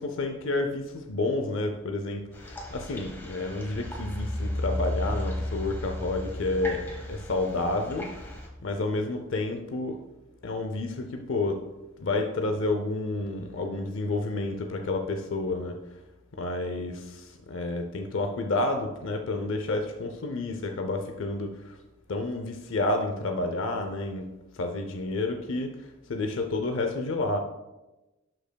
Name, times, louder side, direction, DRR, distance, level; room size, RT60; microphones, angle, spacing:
voice 1, 0.0-8.3 8.6-10.0 10.4-11.6 12.0-15.8 16.4-21.8 22.1-24.3 24.5-27.4, left 2 dB, 60° left, 5 dB, 0.5 m, -30 dB
sound 1, 2.3-8.5, left 1 dB, 10° left, 1.0 m, -34 dB
11.5 x 5.1 x 2.2 m, 1.0 s
head